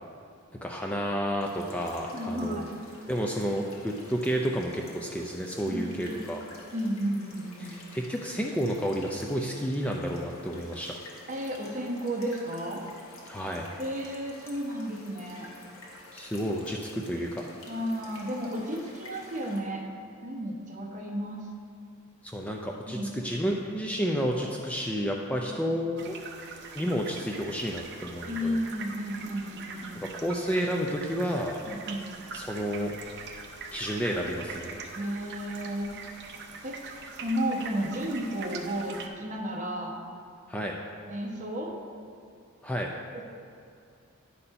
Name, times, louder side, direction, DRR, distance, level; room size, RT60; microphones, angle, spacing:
voice 1, 0.6-2.7 3.1-6.4 7.6-10.9 13.3-13.7 16.1-17.5 22.2-26.2 26.7-28.6 30.1-31.6 32.3-32.9 33.7-34.8 40.5-40.7 42.6-42.9, equal, 5° left, 0 dB, 0.4 m, -31 dB
sound 1, 1.4-19.6, left 2 dB, 65° left, 1.4 m, -50 dB
voice 2, 2.1-2.6 5.6-6.2 6.7-7.8 11.3-12.8 13.8-15.5 17.7-19.9 20.2-21.5 22.9-23.1 25.4-25.7 28.3-30.1 31.7-32.1 34.9-35.9 36.6-40.0 41.1-41.7 43.1-43.2, equal, 35° right, -1 dB, 1.0 m, -33 dB
sound 2, 26.0-39.1, right 4 dB, 50° right, 0.7 m, -43 dB
9.8 x 4.2 x 5.5 m, 2.4 s
head